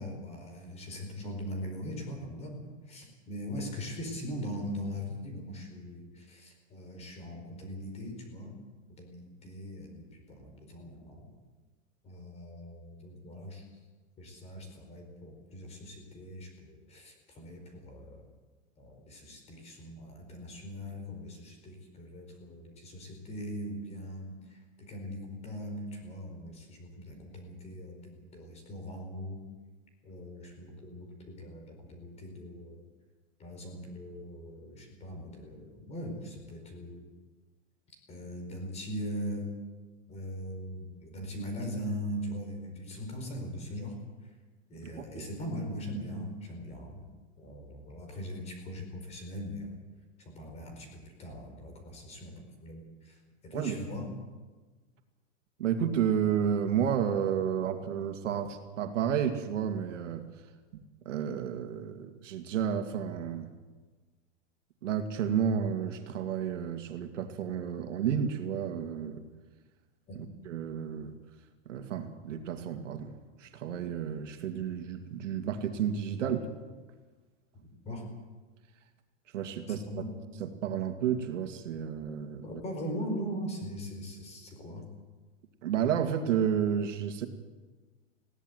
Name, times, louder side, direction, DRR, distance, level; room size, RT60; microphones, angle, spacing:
voice 1, 0.0-8.6 9.0-11.3 12.0-13.7 14.2-18.2 18.8-29.4 30.0-32.8 33.4-37.0 38.1-39.5 40.1-44.3 44.7-47.0 47.4-49.7 50.2-54.1 70.1-70.2 77.8-78.1 79.7-80.1 82.4-84.9, equal, 15° left, 4 dB, 4.4 m, -40 dB
voice 2, 45.0-45.3 53.5-53.8 55.6-60.3 60.7-60.8 61.1-63.5 64.8-69.2 70.4-71.1 71.7-73.1 73.4-76.5 79.3-79.8 80.4-82.5 85.6-87.3, right 8 dB, 70° right, 6 dB, 2.4 m, -31 dB
21.5 x 16.5 x 8.0 m, 1.3 s
supercardioid pair, 165°, 38 cm